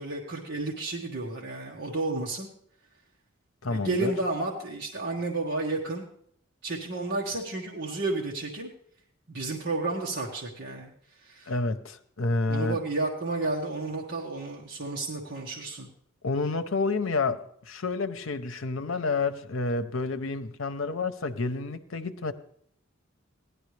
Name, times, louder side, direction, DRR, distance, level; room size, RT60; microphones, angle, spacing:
voice 1, 0.0-2.5 3.6-6.1 6.6-8.7 9.3-11.5 12.5-15.9, right 2 dB, 55° right, 1.5 m, -32 dB
voice 2, 3.6-4.1 11.5-12.8 16.2-22.3, left 3 dB, 70° left, 0.8 m, -29 dB
16.5 x 11.0 x 3.3 m
head